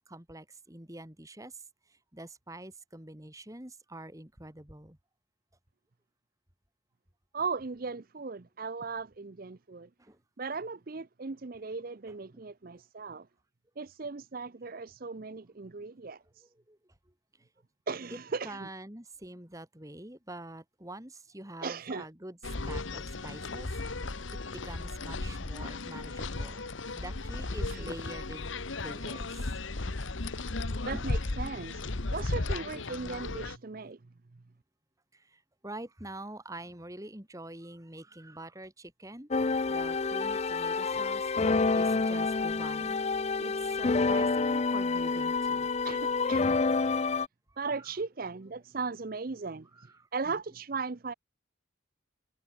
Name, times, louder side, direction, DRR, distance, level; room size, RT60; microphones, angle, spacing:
voice 1, 0.1-1.6 1.9-5.0 10.0-10.2 12.3-12.5 16.7-16.8 18.1-18.2 18.4-22.4 22.7-24.1 24.5-26.6 26.9-28.5 28.8-29.5 30.9-31.1 32.7-32.8 35.1-39.3 39.7-43.0 43.4-45.7 47.5-47.6 49.7-50.1, right 1 dB, 15° right, 2.2 m, -46 dB
voice 2, 7.3-9.9 10.4-13.3 13.8-16.4 17.9-18.7 21.6-22.1 27.7-27.9 29.0-29.2 30.9-34.0 45.8-46.6 47.6-51.1, right 4 dB, 45° right, 0.6 m, -37 dB
sound 1, 22.4-33.6, left 2 dB, 70° left, 1.3 m, -35 dB
sound 2, 39.3-47.3, left 4 dB, 30° left, 0.5 m, -28 dB
head